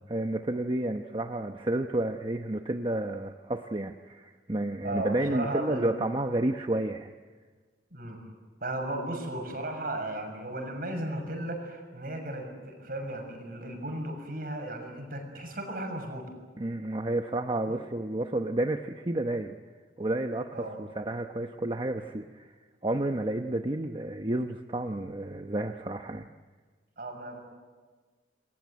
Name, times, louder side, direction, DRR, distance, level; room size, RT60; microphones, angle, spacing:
voice 1, 0.1-7.1 16.6-19.6 20.0-22.5 22.8-26.3, right 1 dB, 30° right, 5 dB, 0.9 m, -31 dB
voice 2, 4.8-5.9 7.9-8.2 8.6-16.3 17.7-17.8 20.5-20.8 27.0-27.4, right 1 dB, 55° right, 4 dB, 6.7 m, -35 dB
28.0 x 22.0 x 9.5 m, 1.4 s
head